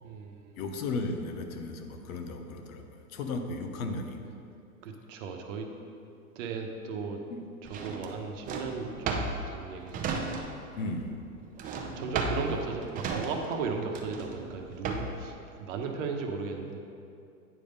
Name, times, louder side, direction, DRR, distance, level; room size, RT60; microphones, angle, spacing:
voice 1, 0.0-0.5 4.2-4.3 4.8-5.7 6.4-7.2 7.7-10.2 11.5-11.6 12.0-16.8, right 5 dB, 60° right, 3 dB, 1.0 m, -36 dB
voice 2, 0.6-4.2 7.3-7.4 10.7-11.2, left 3 dB, 70° left, 5 dB, 0.9 m, -35 dB
Drawer open or close, 7.7-10.8 11.0-15.3, right 4 dB, 20° right, 0.5 m, -35 dB
9.1 x 3.5 x 5.4 m, 2.5 s
hypercardioid pair, 120°, 43 cm